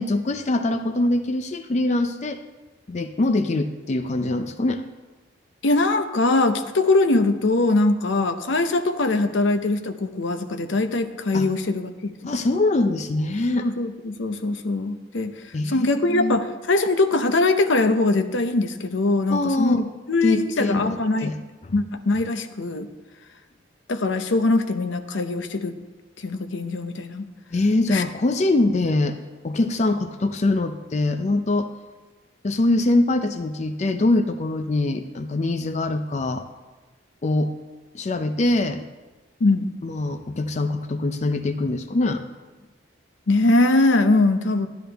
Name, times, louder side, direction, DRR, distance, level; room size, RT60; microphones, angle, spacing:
voice 1, 0.0-2.4 2.9-4.8 11.3-11.5 12.2-13.7 15.5-16.4 19.3-19.9 20.2-21.3 21.6-21.7 27.5-29.2 29.4-31.7 32.4-36.5 37.2-37.5 37.9-38.9 39.8-42.2, left 2 dB, 35° left, 8 dB, 0.4 m, -23 dB
voice 2, 5.6-12.3 13.6-15.3 15.6-21.3 21.7-22.9 23.9-25.8 26.2-27.3 27.9-28.0 39.4-39.7 43.3-44.7, left 2 dB, 75° left, 9 dB, 0.7 m, -22 dB
12.0 x 10.5 x 3.4 m, 1.2 s
head